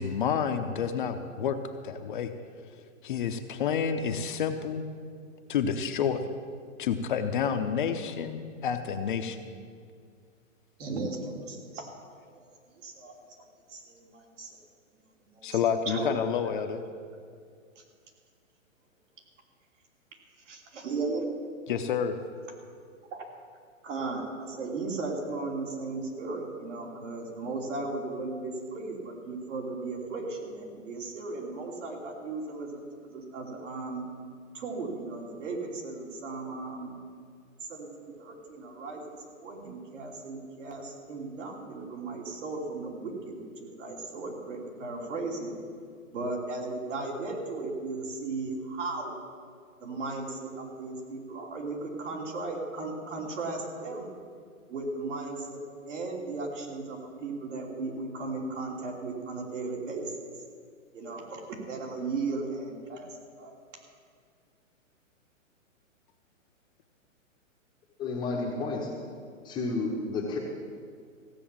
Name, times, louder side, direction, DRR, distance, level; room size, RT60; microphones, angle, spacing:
voice 1, 0.0-1.6 1.8-2.3 3.0-4.8 5.5-6.3 6.8-9.5 15.4-16.8 21.7-22.2, left 7 dB, 40° left, 7 dB, 0.7 m, -29 dB
voice 2, 10.8-11.9 12.3-12.5 12.8-13.1 13.7-14.5 15.3-15.6 15.8-16.1 17.7-17.8 20.4-21.2 23.1-23.2 23.8-34.0 34.5-36.9 37.7-39.1 39.4-45.6 46.1-49.2 49.8-54.1 54.7-55.6 55.8-60.1 60.9-63.1 63.4-63.5, right 3 dB, 60° right, 0 dB, 3.4 m, -36 dB
voice 3, 68.0-68.9 69.4-70.4, left 3 dB, 10° left, -1 dB, 0.9 m, -31 dB
15.5 x 6.9 x 8.7 m, 2.1 s
hypercardioid pair, 155°, 40 cm